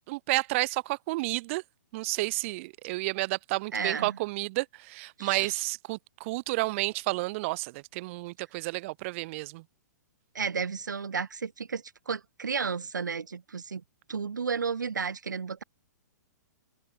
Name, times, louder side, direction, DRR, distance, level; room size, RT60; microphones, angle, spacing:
voice 1, 0.0-1.6 1.9-9.6, right 23 dB, 45° right, 1.3 m, -31 dB
voice 2, 3.7-4.2 5.2-5.5 10.3-13.8 14.1-15.6, right 5 dB, 90° right, 1.3 m, -32 dB
hypercardioid pair, 130°, 10 cm